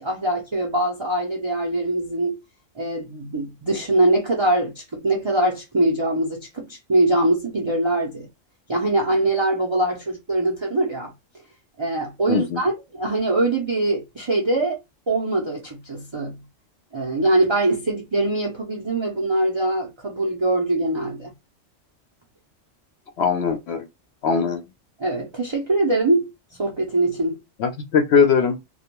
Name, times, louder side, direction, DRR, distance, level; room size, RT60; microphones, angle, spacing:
voice 1, 0.0-2.4 2.8-8.3 8.7-11.1 11.8-14.8 15.1-16.4 16.9-21.3 25.0-27.4, right 2 dB, 40° right, 0.4 m, -23 dB
voice 2, 12.3-12.6 23.2-23.9 24.2-24.6 27.6-28.6, left 6 dB, 65° left, 0.7 m, -20 dB
2.3 x 2.1 x 2.9 m
omnidirectional pair, 1.3 m